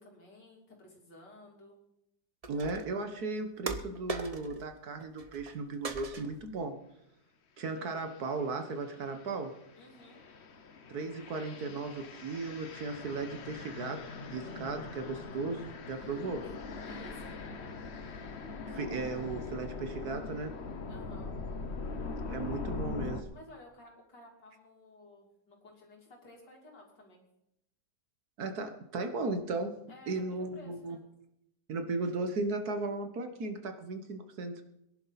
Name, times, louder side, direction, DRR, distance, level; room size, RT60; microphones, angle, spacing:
voice 1, 0.0-1.8 9.7-10.2 15.9-16.4 16.7-17.3 20.9-21.3 23.3-27.2 29.9-31.0, left 2 dB, 75° left, -1 dB, 3.8 m, -54 dB
sound 1, 2.4-3.0 3.7-4.7 5.0-5.6 5.8-6.5, right 4 dB, 30° right, 0.7 m, -40 dB
voice 2, 2.5-6.8 7.6-9.6 10.9-14.0 14.3-16.5 18.7-20.6 22.3-23.3 28.4-31.0 31.7-34.6, right 3 dB, 65° right, 7 dB, 1.7 m, -36 dB
sound 2, 8.0-8.2 8.8-23.2, left 4 dB, 45° left, 1.0 m, -42 dB
22.0 x 11.0 x 4.1 m, 0.83 s
omnidirectional pair, 1.8 m